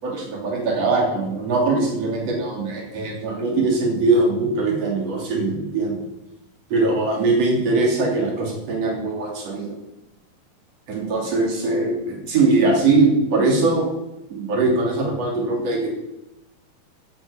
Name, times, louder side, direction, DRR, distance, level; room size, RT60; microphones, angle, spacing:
voice 1, 0.0-6.0 6.7-9.7 10.9-13.9 14.3-15.9, right 3 dB, 45° right, -1 dB, 3.9 m, -21 dB
14.5 x 8.1 x 5.9 m, 0.94 s
omnidirectional pair, 4.3 m